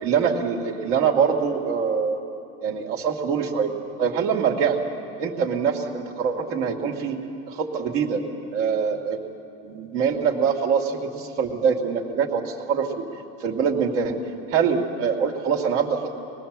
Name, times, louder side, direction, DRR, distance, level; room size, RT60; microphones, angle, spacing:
voice 1, 0.0-2.2 2.6-3.7 4.0-4.8 5.2-7.2 7.5-8.2 8.5-9.2 9.6-13.1 13.4-14.2 14.5-16.2, right 6 dB, 80° right, 1 dB, 2.8 m, -24 dB
25.0 x 20.5 x 7.6 m, 2.7 s
supercardioid pair, 110°, 35 cm